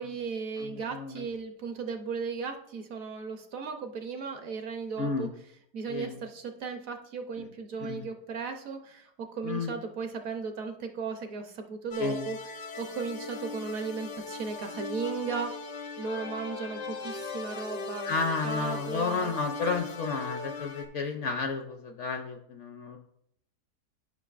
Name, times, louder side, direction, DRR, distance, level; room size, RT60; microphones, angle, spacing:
voice 1, 0.0-5.3 5.7-15.5 16.0-18.2 18.4-19.3, right 5 dB, 65° right, 6 dB, 1.0 m, -36 dB
voice 2, 0.6-1.3 5.0-5.3 5.9-6.2 7.4-7.5 7.8-8.1 9.4-9.8 12.0-12.3 18.0-23.0, left 4 dB, 60° left, 5 dB, 0.8 m, -32 dB
sound 1, 11.9-20.9, left 4 dB, 75° left, 1.4 m, -39 dB
12.0 x 5.7 x 2.4 m, 0.72 s
omnidirectional pair, 1.8 m